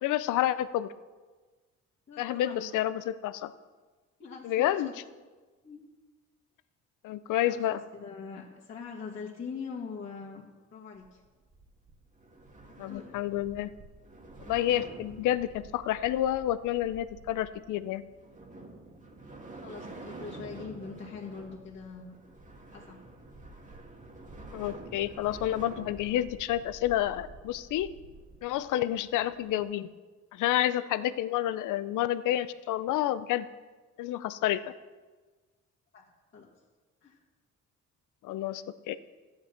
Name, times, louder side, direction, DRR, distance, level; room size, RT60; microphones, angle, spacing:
voice 1, 0.0-0.9 2.2-3.5 4.4-4.9 7.0-7.8 12.8-13.7 14.5-18.0 24.5-27.9 28.4-29.9 30.3-33.5 34.0-34.6 38.2-39.0, left 13 dB, 85° left, 14 dB, 0.6 m, -29 dB
voice 2, 2.1-2.7 4.2-4.9 5.6-5.8 7.4-10.5 10.7-11.2 12.9-13.1 19.6-22.2 22.7-23.0 35.9-36.0 36.3-36.5 37.0-37.2, left 5 dB, 40° left, -6 dB, 1.9 m, -42 dB
sound 1, 10.9-29.6, right 2 dB, 25° right, 1.7 m, -48 dB
13.0 x 9.5 x 4.5 m, 1.3 s
cardioid pair, 90°, 30 cm